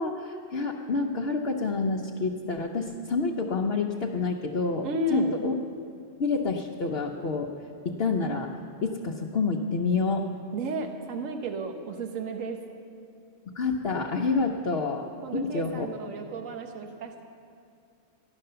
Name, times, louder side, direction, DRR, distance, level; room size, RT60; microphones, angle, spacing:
voice 1, 0.0-5.5 6.2-7.5 7.8-8.5 8.8-10.3 13.5-15.1 15.3-15.9, left 4 dB, 55° left, 0 dB, 0.9 m, -28 dB
voice 2, 4.8-5.3 10.5-12.6 15.2-17.2, right 2 dB, 80° right, 4 dB, 1.4 m, -33 dB
13.5 x 11.0 x 6.7 m, 2.5 s
omnidirectional pair, 1.4 m